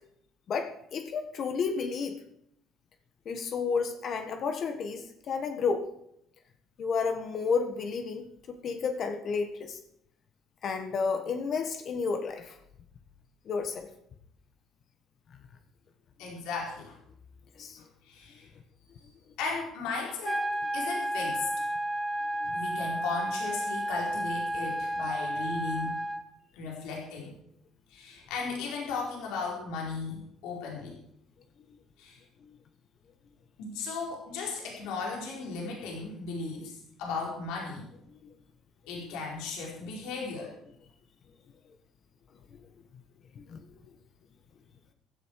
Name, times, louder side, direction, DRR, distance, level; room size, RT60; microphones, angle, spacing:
voice 1, 0.5-2.2 3.2-5.9 6.8-9.8 10.6-12.5 13.4-13.9 17.6-17.8 22.4-22.5 26.7-26.8 43.3-43.6, left 5 dB, 50° left, 6 dB, 1.5 m, -31 dB
voice 2, 16.2-17.0 18.0-18.5 19.4-20.4 20.7-21.5 22.5-26.0 26.5-27.3 27.9-31.0 32.0-32.2 33.6-36.7 37.0-37.9 38.9-40.5, left 4 dB, 90° left, -2 dB, 4.6 m, -36 dB
sound 1, 20.2-26.2, right 1 dB, 5° right, 2.3 m, -32 dB
15.5 x 13.5 x 4.9 m, 0.75 s
cardioid pair, 115°, 0 cm